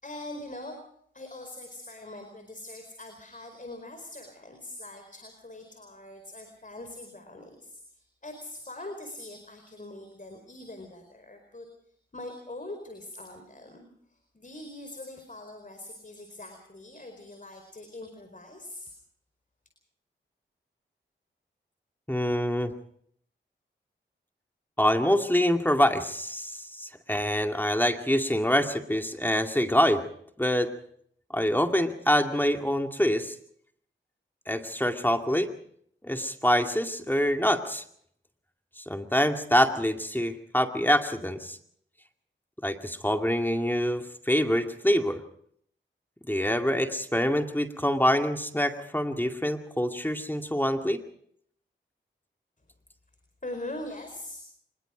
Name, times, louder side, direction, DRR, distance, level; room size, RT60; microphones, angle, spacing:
voice 1, 0.0-0.8 1.1-11.7 12.1-13.9 14.3-18.9 53.4-54.4, left 1 dB, 40° left, 6 dB, 4.7 m, -42 dB
voice 2, 22.1-22.7 24.8-30.0 30.4-30.7 31.3-33.3 34.5-35.5 36.0-37.8 38.9-41.6 42.6-45.2 46.3-51.0, equal, 10° left, 5 dB, 2.2 m, -25 dB
25.0 x 21.5 x 5.2 m, 0.66 s
cardioid pair, 45°, 21 cm